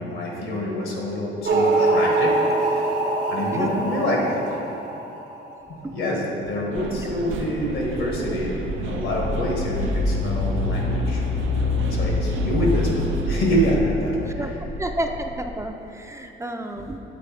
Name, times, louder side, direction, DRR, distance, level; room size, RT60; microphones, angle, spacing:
voice 1, 0.0-2.9 3.3-4.4 5.7-11.2 11.9-14.6, equal, 85° left, -2 dB, 1.4 m, -26 dB
sound 1, 1.4-5.7, right 2 dB, 60° right, 0.7 m, -23 dB
voice 2, 3.5-4.0 5.8-5.9 14.4-14.5 14.8-17.0, right 1 dB, 15° right, 4 dB, 0.4 m, -31 dB
sound 2, 6.7-13.8, right 5 dB, 85° right, 0.5 m, -31 dB
sound 3, 7.8-15.7, left 3 dB, 55° left, 0.5 m, -27 dB
7.8 x 3.4 x 4.8 m, 2.9 s
cardioid pair, 90°, 20 cm